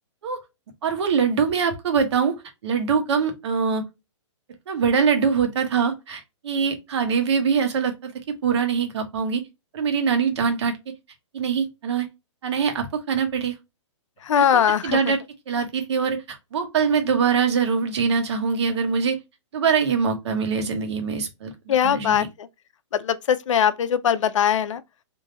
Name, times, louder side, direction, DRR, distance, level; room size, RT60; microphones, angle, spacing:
voice 1, 0.8-2.4 2.6-3.8 4.7-8.1 8.4-9.4 9.7-10.7 11.3-12.1 12.4-13.5 14.4-14.5 14.8-15.2 15.5-19.2 19.5-22.3, right 6 dB, 60° right, 1.3 m, -23 dB
voice 2, 14.2-15.1 21.7-22.5 22.9-24.8, left 8 dB, 75° left, 0.5 m, -21 dB
3.6 x 2.7 x 2.8 m
hypercardioid pair, 155°, 16 cm